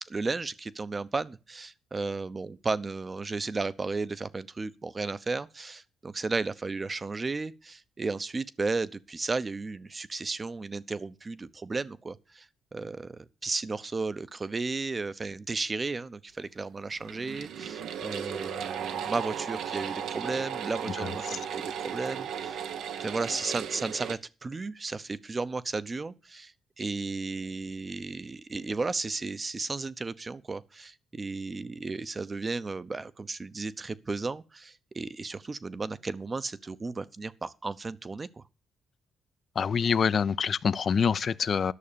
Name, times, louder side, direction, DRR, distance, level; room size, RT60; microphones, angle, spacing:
voice 1, 0.0-12.5 12.7-22.6 23.0-38.4, right 3 dB, 30° right, 0.8 m, -34 dB
sound 1, 17.0-24.2, right 8 dB, 75° right, 0.9 m, -35 dB
voice 2, 39.6-41.7, left 6 dB, 50° left, 0.5 m, -25 dB
11.5 x 6.5 x 6.9 m
cardioid pair, 90°, 0 cm